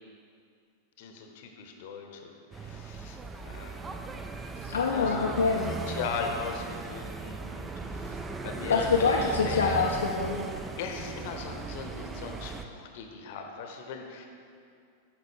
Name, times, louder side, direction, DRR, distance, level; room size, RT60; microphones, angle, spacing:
voice 1, 1.0-3.2 3.4-4.2 4.4-5.3 5.6-9.8 10.5-14.3, left 5 dB, 50° left, 4 dB, 0.8 m, -39 dB
sound 1, 2.5-12.6, right 4 dB, 15° right, 0.4 m, -38 dB
voice 2, 4.7-5.7 8.7-10.5, left 4 dB, 70° left, -1 dB, 0.5 m, -25 dB
9.4 x 5.8 x 3.6 m, 2.4 s
figure-of-eight pair, 90°, 0 cm